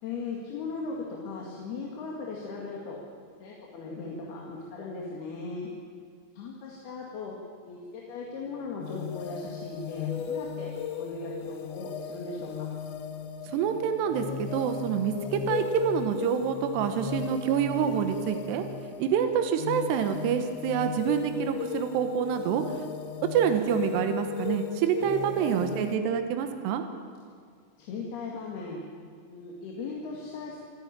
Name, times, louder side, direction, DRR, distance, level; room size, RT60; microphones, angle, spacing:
voice 1, 0.0-3.0 3.4-5.7 6.4-7.3 7.7-12.7 25.3-26.0 27.8-28.8 29.3-30.6, left 3 dB, 65° left, -2 dB, 3.9 m, -38 dB
sound 1, 8.8-26.0, left 8 dB, 85° left, 3.4 m, -36 dB
voice 2, 13.5-18.6 19.0-22.6 23.3-26.8, right 8 dB, 75° right, 6 dB, 3.2 m, -27 dB
27.5 x 10.5 x 9.0 m, 2.1 s
omnidirectional pair, 5.1 m